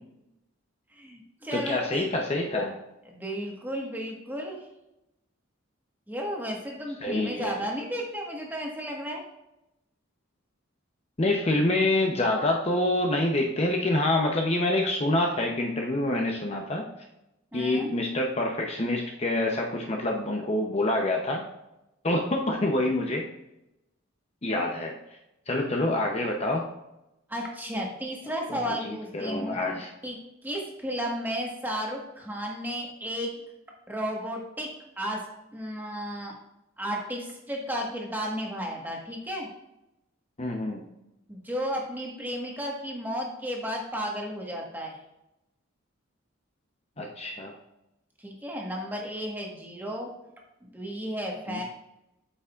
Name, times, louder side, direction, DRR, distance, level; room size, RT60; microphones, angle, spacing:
voice 1, 0.9-2.1 3.1-4.6 6.1-9.2 17.5-17.9 27.3-29.5 30.0-33.3 33.9-34.7 35.0-35.3 35.5-36.3 36.8-39.5 41.3-45.0 48.2-50.1 50.6-51.6, equal, 10° right, -1 dB, 1.4 m, -33 dB
voice 2, 1.5-2.8 7.0-7.6 11.2-16.9 17.5-21.5 22.0-23.3 24.4-25.0 25.5-26.7 28.5-29.9 40.4-40.9 47.0-47.5 51.5-51.6, left 1 dB, 30° left, 1 dB, 0.7 m, -26 dB
8.7 x 6.9 x 2.4 m, 0.90 s
head